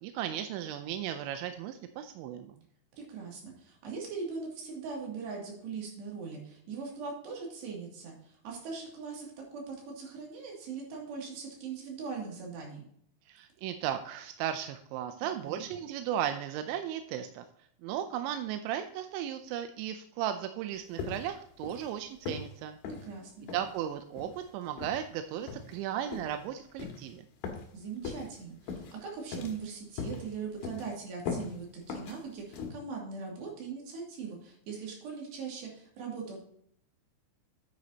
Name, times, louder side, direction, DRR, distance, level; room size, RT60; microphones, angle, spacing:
voice 1, 0.0-2.6 13.3-17.4 17.8-22.8 23.5-27.2, right 10 dB, 80° right, 8 dB, 2.7 m, -36 dB
voice 2, 3.1-12.8 15.4-15.6 23.0-23.5 27.7-36.4, right 5 dB, 60° right, -1 dB, 4.4 m, -40 dB
sound 1, 21.0-21.4 21.6-21.9 22.3-22.5 22.8-23.0 23.5-23.7 24.2-24.4 24.8-25.0 25.5-25.8 26.1-26.3 26.8-27.0 27.4-27.7 28.0-28.3 28.7-28.9 29.3-29.7 30.0-30.2 30.6-30.9 31.3-31.5 31.9-32.2 32.5-32.7, left 5 dB, 65° left, 2.9 m, -38 dB
9.5 x 9.2 x 2.8 m, 0.67 s
omnidirectional pair, 5.7 m